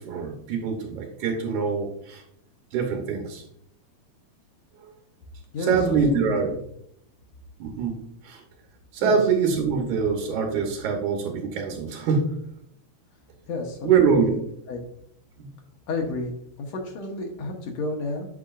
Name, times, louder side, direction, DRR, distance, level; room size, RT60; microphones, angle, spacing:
voice 1, 0.0-2.2 2.7-3.4 4.8-4.9 5.6-6.5 7.6-8.4 8.9-12.4 13.8-14.4 15.4-15.5, right 5 dB, 80° right, 1 dB, 2.4 m, -24 dB
voice 2, 6.1-6.6 9.0-9.2 13.5-14.4 14.7-14.8 15.9-18.3, left 2 dB, 70° left, 1 dB, 2.0 m, -31 dB
8.4 x 6.8 x 2.5 m, 0.73 s
omnidirectional pair, 3.4 m